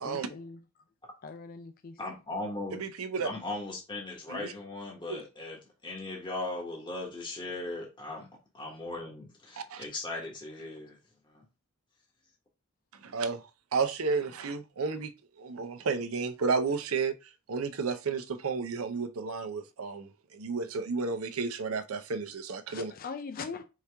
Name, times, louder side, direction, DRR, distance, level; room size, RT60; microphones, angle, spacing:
voice 1, 0.0-0.6 1.2-2.0 3.2-3.3 22.7-23.6, left 5 dB, 45° left, 0.4 m, -41 dB
voice 2, 2.0-2.9 3.2-8.3 8.5-11.0 11.2-11.4, left 2 dB, 20° left, 1.2 m, -38 dB
voice 3, 2.7-3.3 4.3-4.5 5.1-5.2 9.7-9.8 13.0-13.4 13.7-15.1 15.4-17.1 17.5-22.9, right 4 dB, 85° right, 0.6 m, -32 dB
4.8 x 2.9 x 3.4 m
head